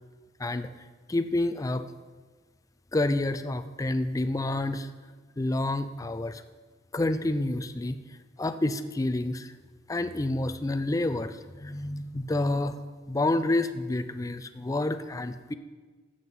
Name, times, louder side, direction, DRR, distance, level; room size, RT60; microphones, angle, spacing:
voice 1, 0.4-0.7 1.1-1.9 2.9-4.9 5.4-6.4 6.9-8.0 8.4-9.5 9.9-12.8 13.1-15.5, left 2 dB, 15° left, 10 dB, 0.4 m, -28 dB
11.5 x 7.7 x 5.4 m, 1.4 s
head